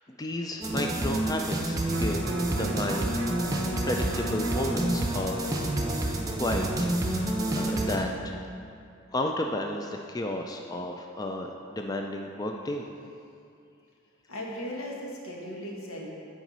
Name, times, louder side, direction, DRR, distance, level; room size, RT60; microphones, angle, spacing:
voice 1, 0.1-3.1 3.8-5.7 6.4-6.7 7.0-8.4 9.1-12.8, left 1 dB, 20° left, 3 dB, 0.3 m, -32 dB
sound 1, 0.6-8.0, right 1 dB, 15° right, 0.7 m, -28 dB
Electric guitar, 1.9-8.1 8.5-8.6, right 3 dB, 60° right, 0.5 m, -40 dB
voice 2, 14.3-16.1, equal, 85° left, -3 dB, 1.6 m, -37 dB
9.0 x 5.0 x 5.4 m, 2.5 s
head